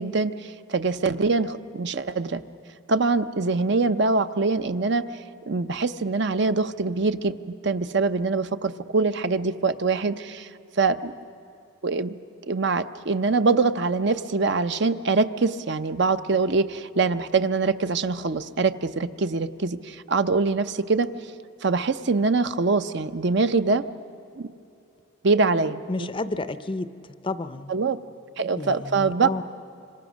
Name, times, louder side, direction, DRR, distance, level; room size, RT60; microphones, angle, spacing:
voice 1, 0.0-2.4 2.9-7.4 7.6-10.5 10.8-11.1 11.8-12.2 12.5-21.1 21.6-23.8 24.4-24.5 25.2-26.1 27.7-28.0 28.4-29.3, right 4 dB, 60° right, 10 dB, 0.6 m, -24 dB
voice 2, 25.9-26.9 27.2-27.7 28.6-29.4, left 2 dB, 25° left, 12 dB, 0.6 m, -30 dB
26.0 x 25.5 x 6.3 m, 2.6 s
head